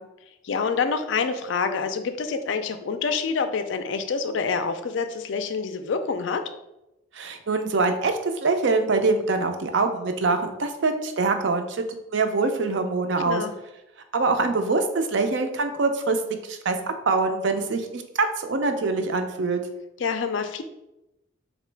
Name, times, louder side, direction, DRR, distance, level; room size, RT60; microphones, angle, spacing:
voice 1, 0.4-6.4 13.3-13.5 20.0-20.6, left 5 dB, 60° left, 9 dB, 0.3 m, -27 dB
voice 2, 7.1-11.8 12.1-13.4 14.1-16.2 16.5-16.8 17.1-19.6, right 3 dB, 60° right, 6 dB, 0.4 m, -24 dB
3.7 x 3.0 x 3.2 m, 0.91 s
head